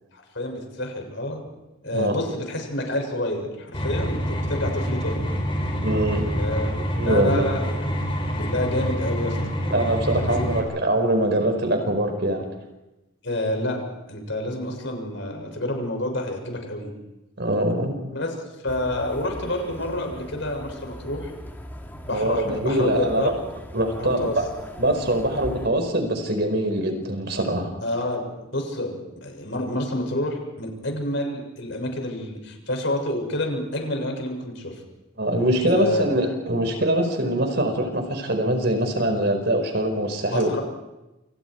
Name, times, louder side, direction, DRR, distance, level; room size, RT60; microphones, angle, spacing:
voice 1, 0.1-1.4 1.8-5.3 6.4-6.8 7.0-7.9 8.3-9.4 10.1-10.5 13.2-13.8 14.1-16.9 18.1-18.3 18.6-21.3 22.0-23.3 24.0-24.4 27.8-34.8 35.7-36.0 40.3-40.6, left 1 dB, 60° left, 3 dB, 7.0 m, -28 dB
sound 1, 3.7-10.6, equal, 25° left, 5.1 m, -26 dB
voice 2, 5.7-6.3 6.7-7.5 9.7-12.5 17.4-18.0 22.1-23.3 23.7-24.5 24.8-27.7 35.2-40.6, right 1 dB, 55° right, 6 dB, 5.1 m, -23 dB
sound 2, 18.7-25.7, equal, 10° left, 3.1 m, -40 dB
29.0 x 29.0 x 4.8 m, 0.99 s
head